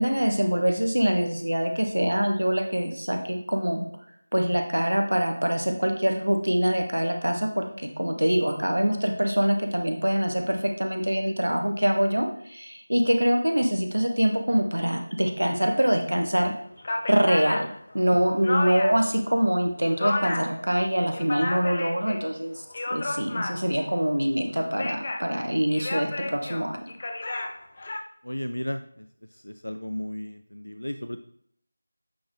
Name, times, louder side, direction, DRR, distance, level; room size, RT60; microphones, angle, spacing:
voice 1, 0.0-3.8 4.3-7.7 8.0-16.5 17.1-22.6 22.9-26.8, equal, 85° right, 4 dB, 1.2 m, -24 dB
sound 1, 16.4-16.5 16.8-19.1 19.5-20.6 21.0-22.2 22.6-23.9 24.5-25.3 25.7-28.0, left 2 dB, 35° left, 0.6 m, -32 dB
voice 2, 28.2-29.1 29.3-31.2, left 1 dB, 90° left, 8 dB, 0.5 m, -34 dB
8.5 x 3.7 x 3.1 m, 0.66 s
figure-of-eight pair, 170°, 0 cm